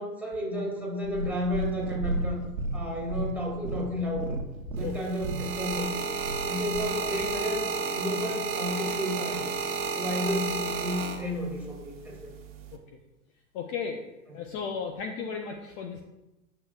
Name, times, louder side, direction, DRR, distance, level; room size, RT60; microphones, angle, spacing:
voice 1, 0.0-2.4 2.7-4.3 4.8-6.0 6.4-9.5 9.9-12.3 14.3-14.4, left 1 dB, 5° right, -3 dB, 2.4 m, -32 dB
Purr, 1.0-7.4 8.1-8.2, right 2 dB, 70° right, 1.0 m, -34 dB
sound 1, 4.8-11.6 12.4-12.7, right 4 dB, 30° right, 1.2 m, -32 dB
voice 2, 13.5-16.0, left 6 dB, 35° left, 4 dB, 0.7 m, -35 dB
9.6 x 6.6 x 2.4 m, 0.97 s
hypercardioid pair, 110°, 42 cm